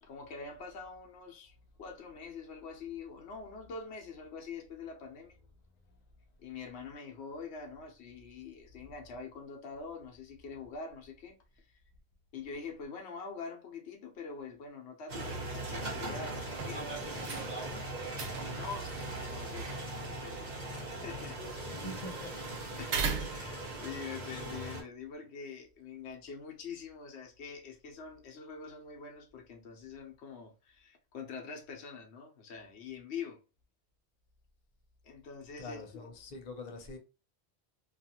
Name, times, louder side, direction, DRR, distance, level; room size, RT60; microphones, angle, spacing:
voice 1, 0.0-5.4 6.4-11.7 12.3-16.9 18.4-21.4 22.8-33.4 35.0-36.1, left 5 dB, 85° left, 1.0 m, -45 dB
sound 1, 15.1-24.8, right 2 dB, 45° right, 1.0 m, -39 dB
sound 2, 16.5-24.0, right 5 dB, 80° right, 0.9 m, -41 dB
voice 2, 21.7-22.3 35.6-37.0, left 2 dB, 50° left, 0.6 m, -44 dB
2.4 x 2.4 x 2.8 m
omnidirectional pair, 1.1 m